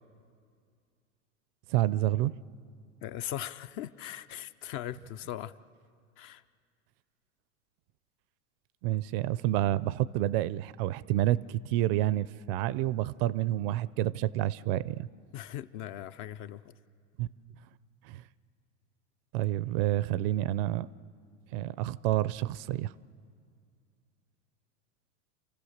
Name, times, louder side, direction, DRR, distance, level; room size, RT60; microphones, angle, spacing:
voice 1, 1.7-2.3 8.8-15.1 17.2-17.3 18.0-18.2 19.3-20.9 21.5-22.9, right 14 dB, 50° right, 20 dB, 0.5 m, -29 dB
voice 2, 3.0-5.5 6.2-6.4 15.3-16.7, left 12 dB, 35° left, 14 dB, 0.4 m, -39 dB
28.5 x 15.0 x 6.5 m, 2.2 s
hypercardioid pair, 120°, 39 cm